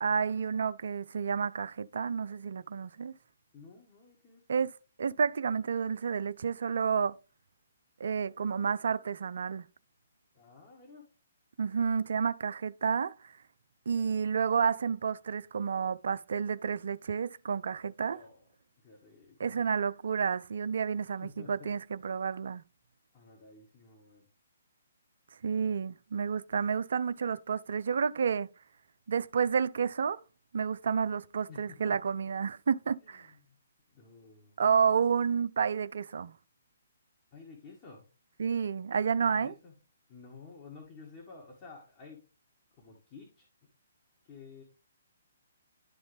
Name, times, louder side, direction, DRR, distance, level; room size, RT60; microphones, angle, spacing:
voice 1, 0.0-3.1 4.5-4.7 5.0-7.2 8.0-9.7 11.6-13.1 13.9-18.2 19.4-22.6 25.4-28.5 29.1-30.2 30.5-33.3 34.6-36.3 38.4-39.5, right 6 dB, 55° right, 0.4 m, -30 dB
voice 2, 3.5-4.6 10.3-11.1 18.1-18.5 18.8-19.5 21.2-21.7 23.1-24.3 31.5-32.0 33.0-33.6 33.9-34.6 37.3-38.1 39.3-39.8 40.1-42.2 42.8-43.5 44.2-44.6, left 4 dB, 25° left, 1.8 m, -52 dB
11.0 x 3.9 x 3.4 m
figure-of-eight pair, 130°, 0 cm